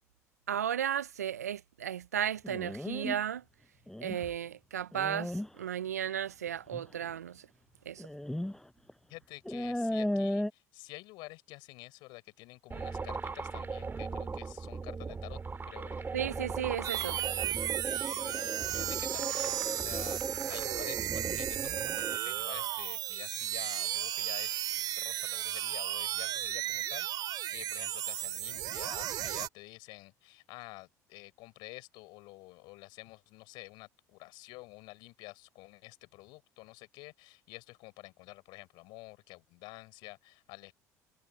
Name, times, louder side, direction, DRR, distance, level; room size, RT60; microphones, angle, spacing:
voice 1, 0.5-3.4 4.0-7.4 7.9-8.1 16.1-17.2, right 9 dB, 85° right, 0.6 m, -34 dB
sound 1, 2.4-3.2 3.9-4.3 4.9-5.5 6.7-6.8 8.0-8.6 8.9-9.0 9.4-10.5, left 1 dB, 5° left, 5.9 m, -34 dB
voice 2, 9.1-15.4 15.7-16.1 17.8-40.7, left 23 dB, 65° left, 5.5 m, -49 dB
sound 2, 12.7-22.2, right 4 dB, 25° right, 2.7 m, -38 dB
sound 3, 16.8-29.5, right 13 dB, 55° right, 2.3 m, -34 dB
hypercardioid pair, 65°, 8 cm